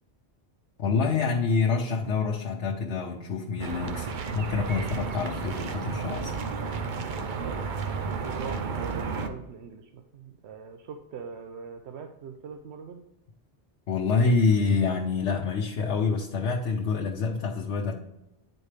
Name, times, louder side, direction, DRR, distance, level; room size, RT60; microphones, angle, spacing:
voice 1, 0.8-6.3 13.9-17.9, left 4 dB, 80° left, 0 dB, 1.0 m, -26 dB
sound 1, 3.6-9.3, right 5 dB, 50° right, 0.7 m, -32 dB
voice 2, 7.4-13.0, right 6 dB, 75° right, 5 dB, 0.9 m, -42 dB
9.8 x 4.4 x 3.3 m, 0.91 s
omnidirectional pair, 1.2 m